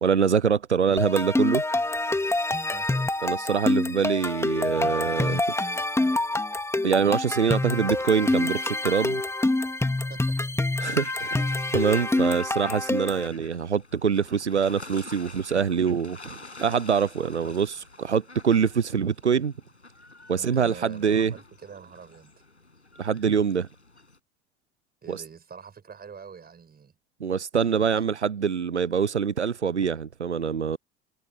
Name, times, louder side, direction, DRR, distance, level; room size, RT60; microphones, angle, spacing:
voice 1, 0.0-1.6 3.2-5.4 6.8-9.2 10.8-11.4 11.7-17.7 18.0-19.5 20.3-21.3 23.0-23.7 25.1-25.2 27.2-30.8, right 6 dB, 90° right, 0.6 m, -24 dB
sound 1, 1.0-13.3, left 2 dB, 10° left, 1.9 m, -26 dB
voice 2, 2.7-3.1 10.1-11.0 17.2-17.5 20.3-22.3 25.0-26.9 27.9-28.1, right 6 dB, 30° right, 6.7 m, -45 dB
sound 2, 10.8-24.2, left 2 dB, 85° left, 7.4 m, -48 dB
figure-of-eight pair, 65°, 33 cm